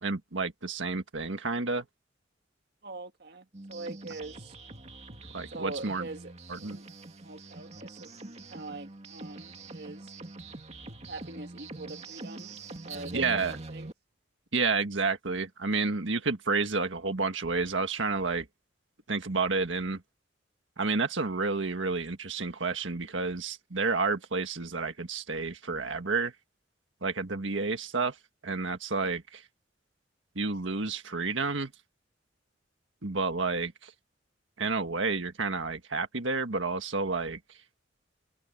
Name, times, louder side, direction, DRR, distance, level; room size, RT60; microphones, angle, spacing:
voice 1, 0.0-1.8 5.3-6.1 6.5-6.8 13.1-13.6 14.5-18.4 19.1-20.0 20.8-26.3 27.0-28.2 28.4-29.4 30.3-31.7 33.0-33.9 34.6-37.4, right 4 dB, 80° right, 1.6 m, -30 dB
voice 2, 2.8-4.5 5.5-6.3 6.6-6.9 7.2-10.1 11.1-12.5 12.8-13.9, right 2 dB, 60° right, 1.7 m, -43 dB
sound 1, 3.5-13.9, right 2 dB, 35° right, 2.3 m, -44 dB
head